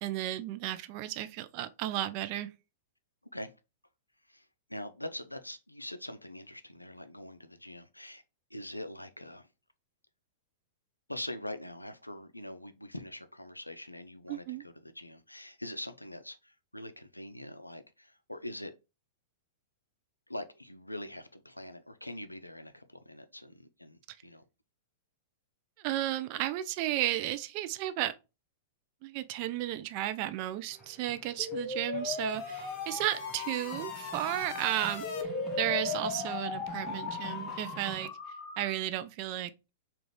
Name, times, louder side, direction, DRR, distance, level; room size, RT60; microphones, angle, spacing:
voice 1, 0.0-2.5 14.3-14.6 24.1-24.2 25.8-28.2 29.0-35.1 35.6-38.1 38.6-39.5, right 14 dB, 40° right, 0.3 m, -33 dB
voice 2, 4.2-8.2 8.5-9.5 11.1-18.7 20.3-24.4, left 1 dB, 90° left, 0.4 m, -43 dB
sound 1, 30.7-38.1, right 2 dB, ahead, 0.8 m, -48 dB
sound 2, 31.4-38.9, left 5 dB, 45° left, 0.6 m, -37 dB
3.6 x 2.4 x 3.2 m
figure-of-eight pair, 100°, 0 cm